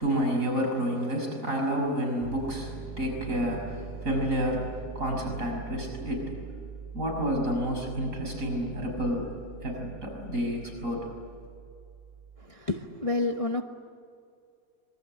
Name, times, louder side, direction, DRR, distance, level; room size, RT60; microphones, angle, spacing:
voice 1, 0.0-6.5 6.9-11.1, equal, 50° right, 6.6 m, -30 dB
Piano, 2.2-12.5, right 6 dB, 15° right, 2.1 m, -43 dB
voice 2, 12.4-13.6, left 2 dB, 25° left, 1.0 m, -29 dB
25.5 x 23.5 x 8.9 m
omnidirectional pair, 1.8 m